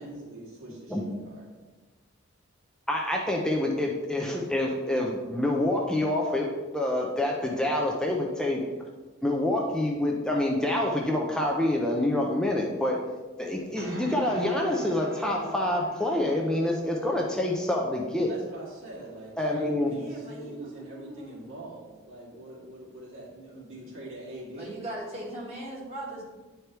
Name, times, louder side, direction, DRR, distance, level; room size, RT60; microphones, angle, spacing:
voice 1, 0.0-1.5 18.1-24.8, right 1 dB, 90° right, -6 dB, 2.4 m, -43 dB
voice 2, 2.9-8.6 9.2-13.0 13.4-18.3 19.4-19.9, left 1 dB, 5° left, -1 dB, 0.5 m, -27 dB
sound 1, 13.5-20.6, right 1 dB, 70° right, 1.2 m, -44 dB
voice 3, 19.8-21.4 24.6-26.3, right 1 dB, 30° right, -6 dB, 1.9 m, -39 dB
9.9 x 4.5 x 3.3 m, 1.2 s
head